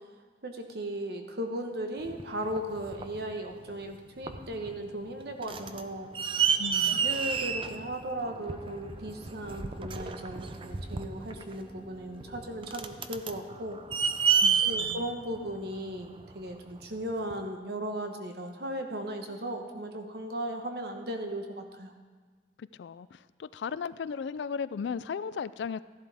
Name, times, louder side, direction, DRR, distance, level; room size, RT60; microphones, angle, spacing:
voice 1, 0.4-6.1 6.9-13.8 14.6-21.9, right 1 dB, 65° right, 4 dB, 1.2 m, -37 dB
sound 1, 2.0-3.2 3.8-4.0 4.2-4.8 5.1-16.5 17.3-17.4, right 6 dB, 30° right, 0.5 m, -30 dB
sound 2, 5.0-12.5, right 1 dB, 10° right, 1.6 m, -54 dB
voice 2, 6.6-7.1 14.4-15.1 22.6-25.8, left 6 dB, 80° left, 16 dB, 0.4 m, -36 dB
14.5 x 11.5 x 3.5 m, 1.4 s
head